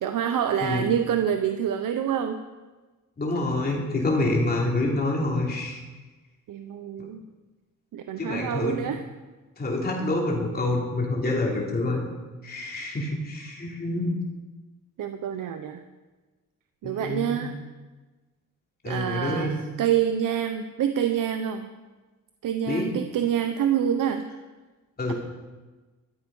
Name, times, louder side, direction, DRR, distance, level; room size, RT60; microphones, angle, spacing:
voice 1, 0.0-2.4 6.5-7.2 7.9-9.0 15.0-15.8 16.8-17.5 18.8-21.7 22.4-24.2, right 9 dB, 85° right, 8 dB, 0.8 m, -26 dB
voice 2, 3.2-5.8 8.2-8.8 9.6-12.0 12.4-14.1 16.8-17.4 18.8-19.6 22.7-22.9 25.0-25.1, left 2 dB, 30° left, -2 dB, 3.0 m, -27 dB
13.5 x 12.0 x 5.5 m, 1.3 s
wide cardioid pair, 175°, 32 cm